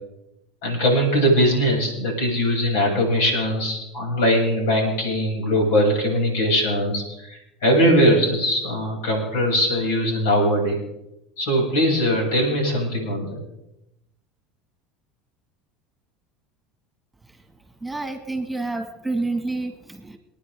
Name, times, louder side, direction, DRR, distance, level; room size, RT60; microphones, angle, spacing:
voice 1, 0.6-10.8 11.4-13.4, equal, 75° left, 0 dB, 7.8 m, -21 dB
voice 2, 17.8-20.2, right 2 dB, 10° right, 5 dB, 2.2 m, -28 dB
29.5 x 9.9 x 3.8 m, 0.84 s
hypercardioid pair, 90°, 0 cm